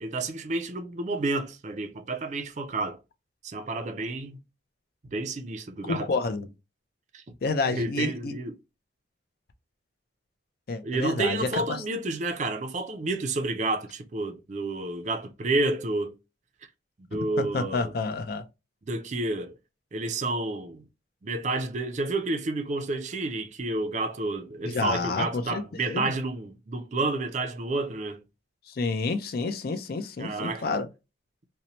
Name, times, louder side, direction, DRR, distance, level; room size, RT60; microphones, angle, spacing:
voice 1, 0.0-3.0 3.4-4.4 5.0-6.1 7.1-7.2 7.7-8.5 10.8-16.2 17.1-17.9 18.8-19.6 19.9-20.8 21.2-28.2 30.2-30.7, right 2 dB, 40° right, 0.4 m, -30 dB
voice 2, 5.8-6.5 7.4-8.3 10.7-11.8 17.1-18.4 24.6-26.1 28.7-30.9, left 3 dB, 55° left, 0.4 m, -29 dB
2.7 x 2.1 x 2.9 m
head